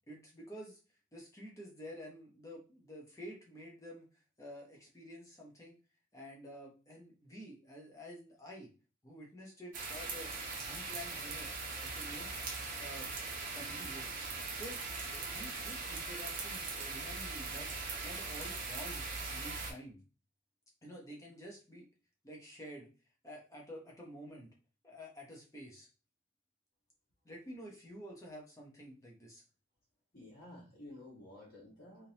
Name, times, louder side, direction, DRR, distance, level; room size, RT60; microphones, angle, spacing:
voice 1, 0.1-0.8 1.1-4.1 4.4-5.8 6.1-8.7 9.0-10.3 10.6-11.5 11.8-12.4 12.8-13.1 13.4-14.1 14.5-14.8 15.1-17.7 18.0-20.0 20.8-21.9 22.2-22.9 23.2-24.5 24.8-25.9 27.2-29.4, equal, 15° left, -2 dB, 0.9 m, -50 dB
sound 1, 9.7-19.7, right 4 dB, 40° right, 0.8 m, -40 dB
voice 2, 30.1-32.1, left 1 dB, 45° left, -7 dB, 1.8 m, -52 dB
3.7 x 2.7 x 2.9 m, 0.34 s
head